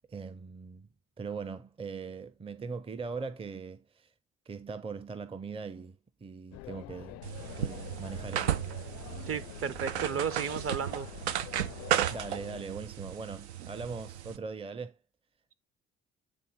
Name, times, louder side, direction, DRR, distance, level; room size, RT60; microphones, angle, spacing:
voice 1, 0.1-0.9 1.2-4.1 4.5-7.2 7.6-8.6 12.1-15.0, right 5 dB, 15° right, 0.6 m, -40 dB
sound 1, 6.5-12.6, left 18 dB, 50° left, 0.4 m, -46 dB
sound 2, 7.2-14.4, right 10 dB, 80° right, 0.6 m, -34 dB
voice 2, 9.2-11.1, right 7 dB, 40° right, 1.0 m, -33 dB
8.7 x 3.8 x 4.0 m
figure-of-eight pair, 50°, 33 cm